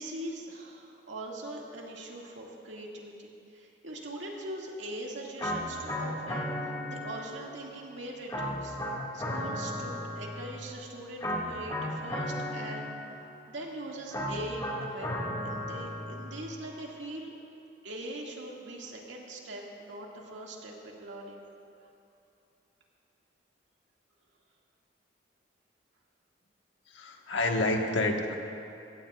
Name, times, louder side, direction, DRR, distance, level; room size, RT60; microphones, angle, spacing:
voice 1, 0.0-8.8 9.1-12.9 13.5-15.1 15.4-17.3 17.8-21.4, right 1 dB, 85° right, -2 dB, 2.2 m, -41 dB
sound 1, 5.4-7.5 8.3-10.7 11.2-13.3 14.1-16.5, left 1 dB, 20° left, 2.0 m, -35 dB
voice 2, 26.9-28.3, left 2 dB, 85° left, 1 dB, 1.5 m, -28 dB
22.0 x 17.0 x 2.5 m, 2.9 s
head